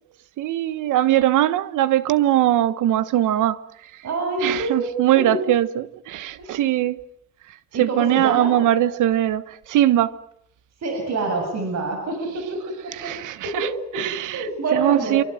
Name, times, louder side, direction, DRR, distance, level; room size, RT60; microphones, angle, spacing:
voice 1, 0.4-3.6 4.4-7.0 7.8-10.2 13.0-13.7 13.9-15.2, right 13 dB, 85° right, 1.3 m, -21 dB
voice 2, 4.0-5.4 6.4-6.7 7.7-8.5 10.8-12.6 12.8-13.1 13.4-15.3, right 3 dB, 60° right, 7.2 m, -27 dB
27.0 x 25.0 x 7.8 m
cardioid pair, 90°, 30 cm